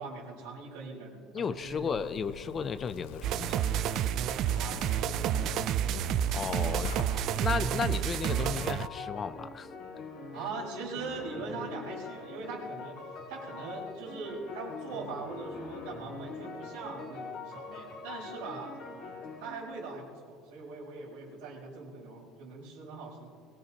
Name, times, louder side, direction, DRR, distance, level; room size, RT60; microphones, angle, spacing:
voice 1, 0.0-2.0 4.4-5.5 6.9-7.5 10.3-18.8 19.4-23.3, right 4 dB, 80° right, -5 dB, 4.4 m, -41 dB
voice 2, 1.3-3.9 6.3-6.9 7.4-9.7, left 6 dB, 20° left, 13 dB, 0.4 m, -34 dB
Zipper (clothing), 1.5-8.2, left 9 dB, 80° left, 0.6 m, -44 dB
sound 1, 3.2-8.9, right 11 dB, 40° right, 0.3 m, -30 dB
sound 2, 8.2-19.7, left 4 dB, 40° left, 2.1 m, -43 dB
22.0 x 18.5 x 2.9 m, 2.4 s
cardioid pair, 175°, 0 cm